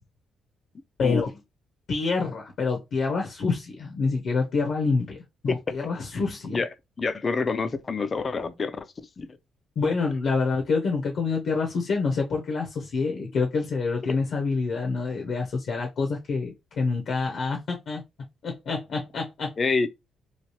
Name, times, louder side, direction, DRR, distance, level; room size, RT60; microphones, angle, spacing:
voice 1, 1.9-5.2 5.4-6.6 9.8-18.0 18.4-19.5, left 4 dB, 65° left, 0.8 m, -27 dB
voice 2, 7.0-8.9 9.2-9.3 14.1-14.2 19.6-19.9, left 4 dB, 35° left, 0.4 m, -27 dB
3.2 x 2.4 x 2.8 m
cardioid pair, 90°, 0 cm